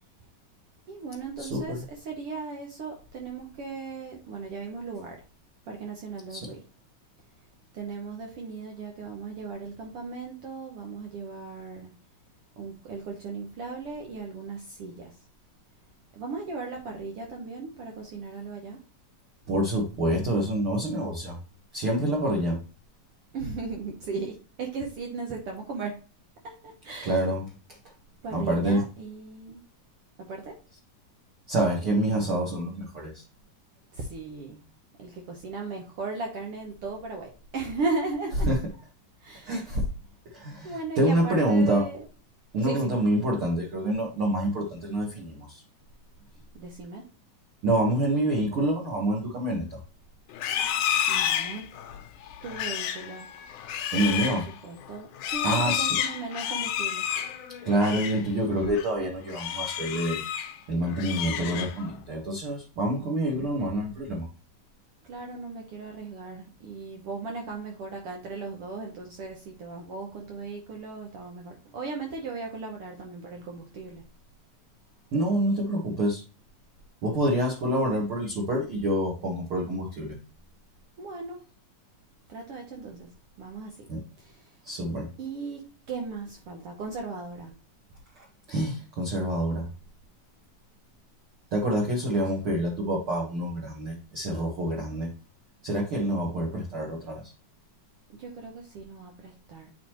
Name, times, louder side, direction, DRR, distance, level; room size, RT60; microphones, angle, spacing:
voice 1, 0.9-5.2 5.7-6.6 7.7-11.9 12.6-15.2 16.1-18.8 23.3-26.0 26.4-27.2 28.2-29.6 30.3-30.6 33.9-34.6 35.0-38.5 39.2-39.6 40.6-42.0 42.6-42.9 46.5-47.1 51.1-51.7 52.4-53.3 54.3-54.4 54.6-57.0 63.0-63.3 65.0-74.0 81.0-81.4 82.3-83.1 83.4-83.9 84.2-84.5 85.2-87.5 92.2-92.3 98.1-99.7, right 4 dB, 80° right, 1 dB, 1.3 m, -37 dB
voice 2, 1.4-1.8 6.3-6.5 19.5-21.4 21.7-22.6 27.0-27.5 28.3-28.8 31.5-33.2 38.5-38.6 39.5-39.9 40.3-41.8 42.5-45.6 47.6-49.8 53.9-54.5 55.4-56.0 57.6-60.2 60.7-64.3 75.1-76.2 77.0-80.2 83.9-84.0 84.6-85.1 88.2-89.7 91.5-95.1 95.6-97.2, right 1 dB, 50° right, -2 dB, 1.8 m, -27 dB
Livestock farm animals working animals, 50.3-58.2 58.6-58.9 59.3-60.6 60.9-61.9, left 10 dB, 75° left, 2.0 m, -30 dB
8.8 x 4.2 x 3.0 m, 0.35 s
omnidirectional pair, 4.0 m